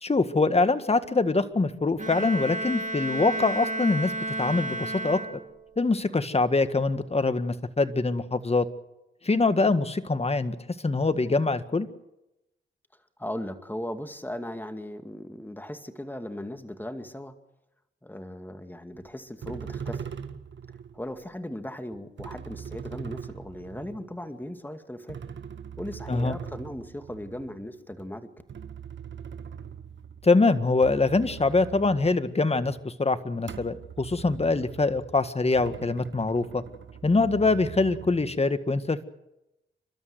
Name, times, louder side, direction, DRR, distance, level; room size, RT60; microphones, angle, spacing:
voice 1, 0.0-4.1 4.4-5.2 5.8-8.7 9.2-10.6 10.8-11.9 26.1-26.4 30.2-36.6 37.0-39.0, left 3 dB, 30° left, 11 dB, 1.8 m, -24 dB
Bowed string instrument, 2.0-5.8, right 1 dB, 35° right, 2.9 m, -32 dB
voice 2, 13.2-17.3 18.0-20.0 20.9-25.2 25.8-28.3, left 1 dB, 10° left, 8 dB, 2.3 m, -37 dB
sound 1, 18.9-19.1 19.4-21.1 21.9-24.5 25.1-30.3 30.7-32.9 33.4-38.5, right 7 dB, 65° right, 1.7 m, -41 dB
29.5 x 13.0 x 8.0 m, 0.90 s
cardioid pair, 55°, 21 cm